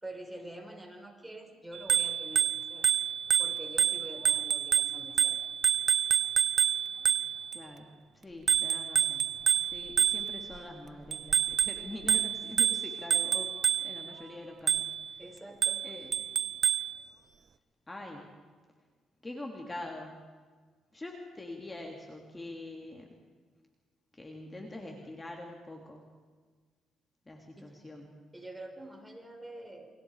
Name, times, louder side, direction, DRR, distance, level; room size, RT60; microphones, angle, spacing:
voice 1, 0.0-2.9 3.4-5.4 15.2-15.9 27.6-27.7 28.3-29.9, right 1 dB, 10° right, 3 dB, 5.5 m, -46 dB
Bicycle bell, 1.8-7.6 8.5-10.6 11.1-14.1 14.7-15.1 15.6-17.0, right 8 dB, 55° right, 0.9 m, -28 dB
voice 2, 7.5-9.3 9.6-13.5 13.8-15.2 15.8-16.1 17.9-18.3 19.2-20.3 20.9-23.2 24.1-26.1 27.3-28.1, left 2 dB, 20° left, 1 dB, 3.4 m, -44 dB
29.5 x 25.5 x 5.1 m, 1.5 s
cardioid pair, 90°, 0 cm